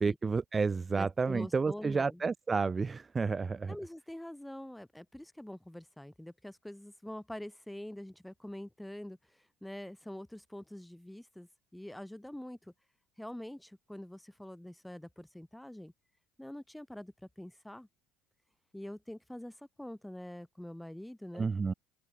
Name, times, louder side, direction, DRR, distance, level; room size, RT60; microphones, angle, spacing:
voice 1, 0.0-3.7 21.3-21.7, right 4 dB, 25° right, 1.3 m, -30 dB
voice 2, 1.0-2.2 3.7-12.7 13.2-15.9 16.4-17.9 18.7-21.5, left 1 dB, 5° left, 6.6 m, -45 dB
open air
supercardioid pair, 85°, 0 cm